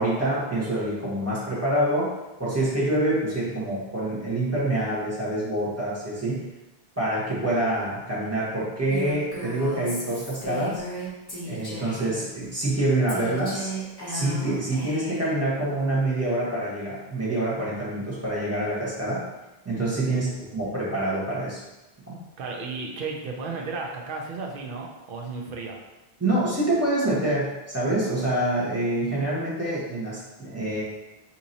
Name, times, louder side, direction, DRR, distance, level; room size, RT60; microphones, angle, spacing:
voice 1, 0.0-2.1 2.4-6.4 7.0-10.8 11.5-13.7 14.1-19.2 19.6-21.6 22.1-22.2 26.2-30.8, right 1 dB, 15° right, -8 dB, 1.0 m, -26 dB
Female speech woman speaking, 8.9-12.2 13.1-15.3, right 1 dB, 25° left, 1.0 m, -35 dB
voice 2, 22.4-25.8, right 4 dB, 65° right, 1 dB, 0.7 m, -34 dB
2.9 x 2.7 x 3.9 m, 1.0 s
omnidirectional pair, 1.1 m